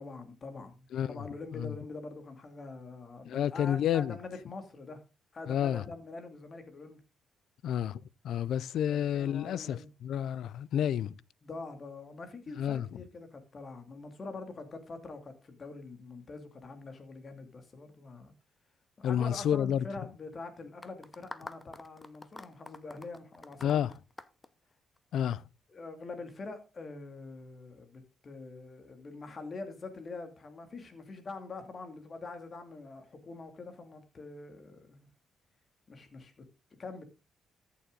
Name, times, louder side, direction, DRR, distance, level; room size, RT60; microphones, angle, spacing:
voice 1, 0.0-5.0 5.3-7.0 8.9-9.9 11.4-18.3 19.0-23.8 25.7-35.1 35.9-36.4 36.8-37.0, left 3 dB, 40° left, 2.6 m, -44 dB
voice 2, 0.9-1.2 1.6-1.7 3.2-4.2 5.5-5.8 7.6-11.1 12.6-12.9 19.0-19.8 23.6-23.9 25.1-25.4, left 10 dB, 75° left, 0.5 m, -30 dB
sound 1, 20.8-25.2, left 2 dB, 15° left, 0.8 m, -47 dB
13.5 x 7.2 x 3.9 m
cardioid pair, 90°, 0 cm